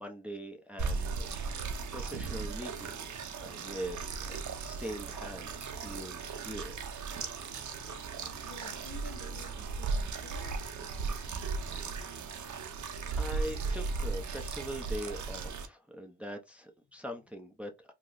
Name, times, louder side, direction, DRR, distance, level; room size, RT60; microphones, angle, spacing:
voice 1, 0.0-6.8 13.2-17.9, equal, 5° right, 0.6 m, -42 dB
sound 1, 0.8-15.7, right 4 dB, 55° right, 0.7 m, -37 dB
voice 2, 8.4-10.6, left 5 dB, 35° left, 0.7 m, -50 dB
2.9 x 2.1 x 3.8 m
cardioid pair, 100°, 35 cm